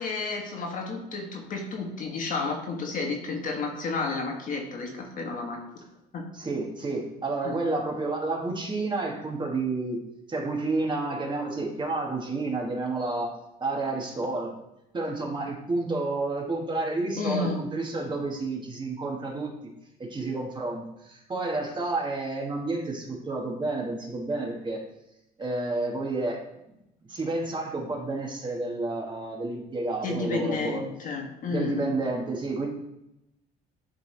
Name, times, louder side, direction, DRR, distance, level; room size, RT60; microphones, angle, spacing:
voice 1, 0.0-5.6 6.1-6.2 7.4-7.6 17.2-17.6 30.0-31.9, left 3 dB, 50° left, 2 dB, 1.4 m, -31 dB
voice 2, 6.3-10.0 10.3-13.3 13.6-14.5 14.9-19.5 20.0-24.8 25.4-26.4 27.1-30.9 31.5-32.7, right 2 dB, 25° right, 0 dB, 1.4 m, -30 dB
10.0 x 3.4 x 3.2 m, 0.87 s
cardioid pair, 110°, 17 cm